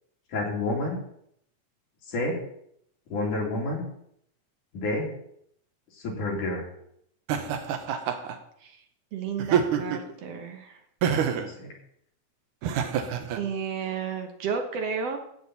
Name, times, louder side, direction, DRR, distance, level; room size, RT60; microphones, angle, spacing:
voice 1, 0.3-1.0 2.1-2.4 3.1-3.9 4.7-5.1 5.9-6.6 11.5-11.7, left 2 dB, 85° left, -2 dB, 4.4 m, -29 dB
Laughter, 7.3-8.4 9.4-10.1 11.0-11.5 12.6-13.4, right 8 dB, 90° right, 2.6 m, -26 dB
voice 2, 9.1-10.8 13.4-15.2, right 6 dB, 65° right, 5 dB, 2.0 m, -32 dB
14.5 x 8.6 x 4.1 m, 0.71 s
omnidirectional pair, 3.5 m